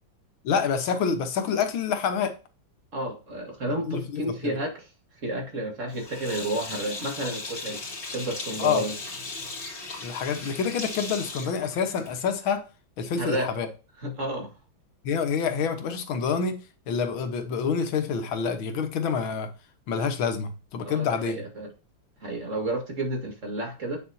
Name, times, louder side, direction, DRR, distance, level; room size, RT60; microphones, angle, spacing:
voice 1, 0.4-2.4 3.9-4.6 8.6-8.9 10.0-12.6 13.0-13.7 15.0-16.6 16.9-19.5 19.9-21.4, left 6 dB, 85° left, 1.9 m, -27 dB
voice 2, 2.9-4.9 5.2-7.8 8.1-9.0 13.2-13.5 14.0-14.5 20.8-21.7 22.2-24.0, right 1 dB, 40° right, 2.1 m, -31 dB
Sink (filling or washing), 5.9-12.3, left 3 dB, 45° left, 2.6 m, -37 dB
8.0 x 6.7 x 2.7 m
omnidirectional pair, 2.2 m